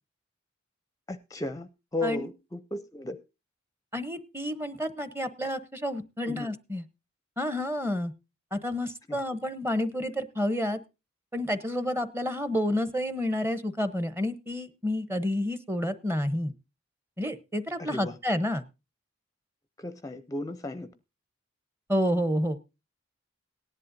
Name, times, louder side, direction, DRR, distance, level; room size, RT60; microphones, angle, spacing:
voice 1, 1.1-3.2 6.3-6.6 9.1-9.2 17.8-18.2 19.8-20.9, left 1 dB, 15° left, 11 dB, 0.5 m, -35 dB
voice 2, 3.9-6.8 7.4-8.1 8.5-10.8 11.3-16.5 17.2-18.6 21.9-22.6, left 1 dB, 10° right, 12 dB, 0.8 m, -29 dB
18.0 x 10.5 x 2.6 m, 0.27 s
head